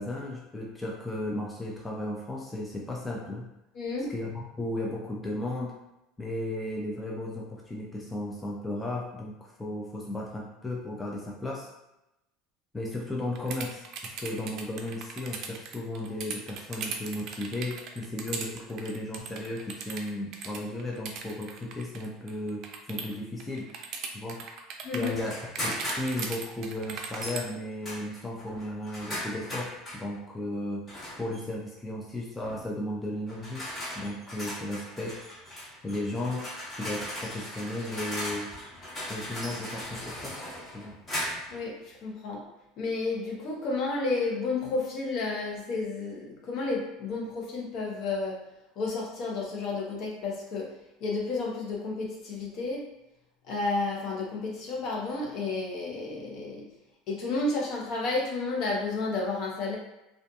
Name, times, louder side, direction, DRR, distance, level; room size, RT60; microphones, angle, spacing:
voice 1, 0.0-3.5 4.1-5.8 6.2-11.7 12.7-23.7 24.1-24.5 24.9-33.6 34.0-35.5 35.8-36.5 36.7-38.5 39.1-40.4 40.7-40.9, left 1 dB, 10° left, -2 dB, 0.4 m, -35 dB
voice 2, 3.7-4.1 24.8-25.1 41.5-42.4 42.8-48.4 48.8-50.7 51.0-52.8 53.5-56.7 57.1-59.8, left 3 dB, 55° left, -2 dB, 0.8 m, -31 dB
sound 1, 13.3-23.1 23.4-25.2 25.5-27.4, right 6 dB, 55° right, 0.4 m, -38 dB
sound 2, 25.1-26.4 27.1-27.4 27.8-30.0 30.9-31.4 32.4-32.6 33.3-41.6, equal, 30° left, 1.2 m, -38 dB
2.5 x 2.4 x 2.3 m, 0.91 s
supercardioid pair, 100°, 0 cm